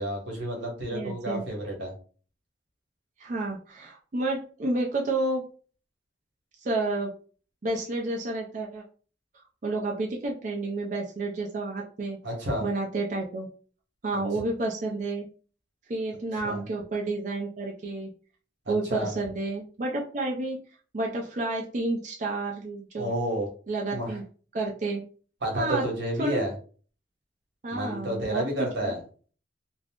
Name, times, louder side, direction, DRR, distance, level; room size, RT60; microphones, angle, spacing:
voice 1, 0.0-1.9 12.2-12.6 14.1-14.2 16.4-16.6 18.7-19.1 23.0-23.5 23.9-24.2 25.4-26.5 27.7-29.0, right 1 dB, 85° right, 1 dB, 1.0 m, -30 dB
voice 2, 0.9-1.4 3.2-5.5 6.6-7.1 7.6-8.8 9.6-12.2 12.6-13.5 14.0-15.3 15.9-18.1 18.7-20.6 20.9-23.1 23.7-24.2 24.5-25.0 25.6-25.9 26.2-26.5 27.6-28.9, right 2 dB, 45° right, -1 dB, 0.4 m, -30 dB
2.4 x 2.0 x 3.4 m, 0.40 s
head